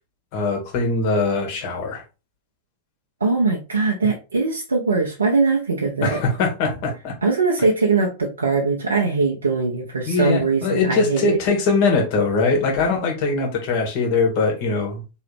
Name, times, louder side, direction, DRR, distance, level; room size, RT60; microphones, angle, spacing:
voice 1, 0.3-2.0 6.0-7.1 10.1-15.0, left 3 dB, 45° left, 1.5 m, -21 dB
voice 2, 3.2-6.2 7.2-11.4, right 4 dB, 75° right, 0.8 m, -21 dB
3.8 x 3.1 x 3.2 m
figure-of-eight pair, 90°, 0 cm